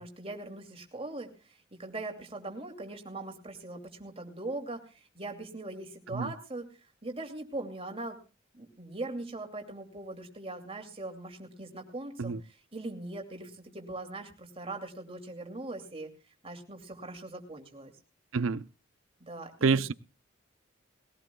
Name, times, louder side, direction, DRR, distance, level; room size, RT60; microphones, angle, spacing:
voice 1, 0.0-6.7 7.0-8.2 8.5-16.1 16.4-17.9 19.2-19.8, right 2 dB, 25° right, 2.5 m, -41 dB
voice 2, 18.3-18.6 19.6-19.9, right 5 dB, 75° right, 0.6 m, -27 dB
20.5 x 17.0 x 2.3 m
head